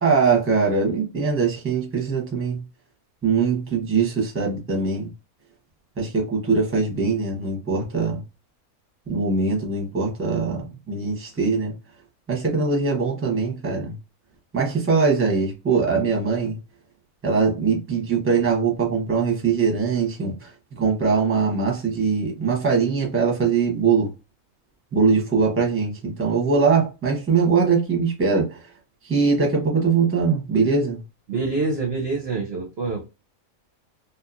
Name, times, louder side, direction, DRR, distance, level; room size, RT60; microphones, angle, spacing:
voice 1, 0.0-2.6 3.2-5.1 6.0-8.2 9.1-11.7 12.3-14.0 14.5-16.6 17.2-24.1 24.9-28.6 29.0-31.0, right 5 dB, 10° right, 0.7 m, -22 dB
voice 2, 31.3-33.0, right 3 dB, 60° right, 0.7 m, -26 dB
2.9 x 2.3 x 2.4 m
omnidirectional pair, 1.5 m